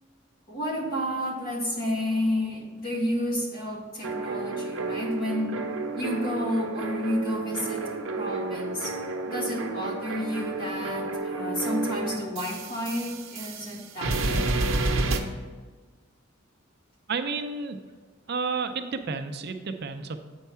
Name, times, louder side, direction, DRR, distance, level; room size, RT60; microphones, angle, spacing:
voice 1, 0.5-5.6 5.9-8.9 9.3-14.5, left 1 dB, 50° left, -1 dB, 1.6 m, -31 dB
sound 1, 4.0-13.7 14.0-15.2, right 2 dB, 85° right, 0.8 m, -30 dB
voice 2, 17.1-17.8 18.3-20.2, right 4 dB, 55° right, 7 dB, 0.5 m, -31 dB
8.2 x 4.6 x 5.5 m, 1.4 s
head